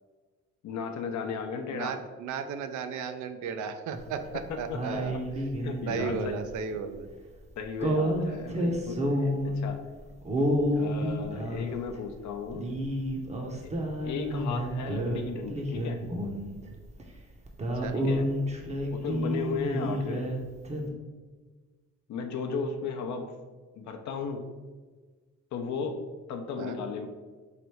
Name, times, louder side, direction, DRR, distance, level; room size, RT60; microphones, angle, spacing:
voice 1, 0.6-2.0 4.5-4.8 5.1-5.2 5.6-6.4 7.6-9.8 10.7-12.7 13.6-13.7 14.0-16.0 17.9-18.3 18.9-20.3 22.1-23.3 23.8-24.5 25.5-27.1, left 5 dB, 70° left, 5 dB, 0.6 m, -35 dB
voice 2, 1.7-5.1 5.9-7.1 8.3-8.4 17.7-18.0 26.6-26.8, right 6 dB, 75° right, 8 dB, 0.5 m, -35 dB
sound 1, 3.9-4.4 4.7-6.5 7.8-9.7 10.2-12.0 12.5-15.2 15.5-16.7 17.0-17.1 17.5-20.4 20.6-20.9, equal, 20° right, 0.7 m, -30 dB
3.3 x 2.6 x 4.4 m, 1.4 s
cardioid pair, 90°, 30 cm